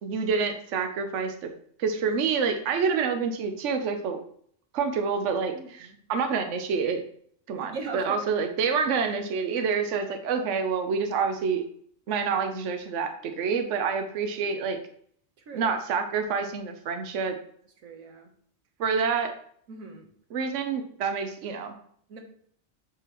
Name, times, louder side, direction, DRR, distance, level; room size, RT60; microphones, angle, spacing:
voice 1, 0.0-1.5 1.8-4.2 4.7-7.0 7.5-11.6 12.1-14.8 15.5-17.4 18.8-19.3 20.3-21.7, right 5 dB, 65° right, 7 dB, 1.1 m, -27 dB
voice 2, 5.5-6.0 7.7-8.3 15.5-15.7 17.8-18.3 19.7-20.1 22.1-22.2, right 4 dB, 85° right, 3 dB, 1.6 m, -39 dB
8.2 x 5.3 x 3.0 m, 0.62 s
omnidirectional pair, 1.4 m